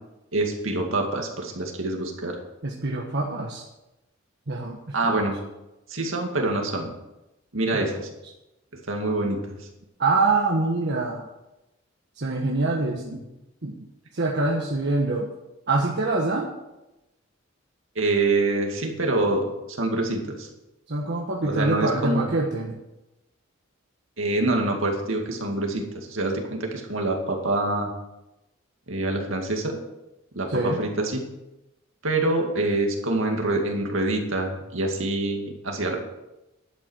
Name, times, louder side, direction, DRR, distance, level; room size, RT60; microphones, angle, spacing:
voice 1, 0.3-2.4 4.9-5.4 5.9-6.9 7.5-8.1 8.9-9.7 12.9-13.2 18.0-20.5 21.4-22.3 24.2-27.9 28.9-29.8 30.3-31.2 32.0-36.0, right 2 dB, 75° right, 2 dB, 2.3 m, -26 dB
voice 2, 2.6-3.6 4.5-5.3 7.8-7.9 10.0-11.2 12.2-13.0 13.6-13.7 14.1-15.3 15.7-16.5 20.9-22.8 30.5-30.8, right 3 dB, 60° right, -1 dB, 1.4 m, -25 dB
11.5 x 8.4 x 6.5 m, 0.95 s
head